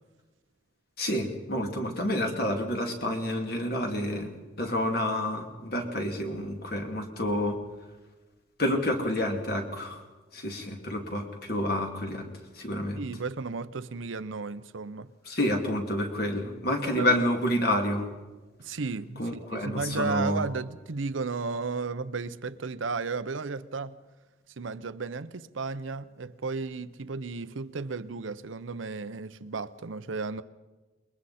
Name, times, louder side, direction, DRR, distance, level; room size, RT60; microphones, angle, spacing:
voice 1, 1.0-7.6 8.6-10.0 10.3-12.3 12.5-13.0 15.2-18.1 19.2-20.4, left 1 dB, 50° left, 2.7 m, -29 dB
voice 2, 13.0-15.1 17.0-17.2 18.6-24.0 24.6-30.4, right 4 dB, 90° right, 0.7 m, -34 dB
28.5 x 21.5 x 4.3 m
head